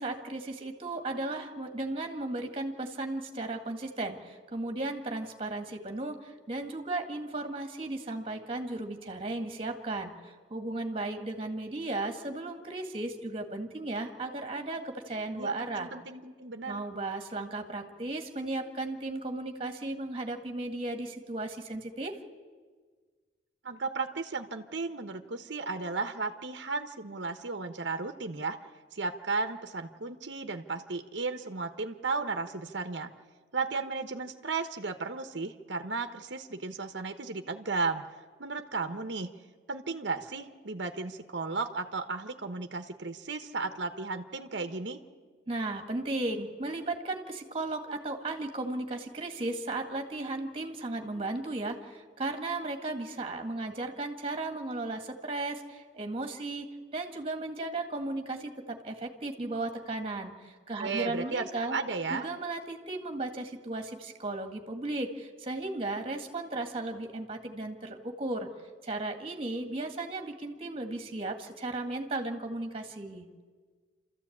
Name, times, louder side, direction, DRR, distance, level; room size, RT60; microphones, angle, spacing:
voice 1, 0.0-15.9 16.7-22.1 45.5-56.7 56.9-61.8 62.1-68.5 68.8-73.3, right 2 dB, 30° right, 5 dB, 2.0 m, -35 dB
voice 2, 15.3-16.8 23.6-28.6 28.9-33.1 33.5-38.0 38.4-39.3 39.7-45.0 60.8-62.3, right 4 dB, 65° right, 7 dB, 1.1 m, -34 dB
28.0 x 14.0 x 8.7 m, 1.5 s
head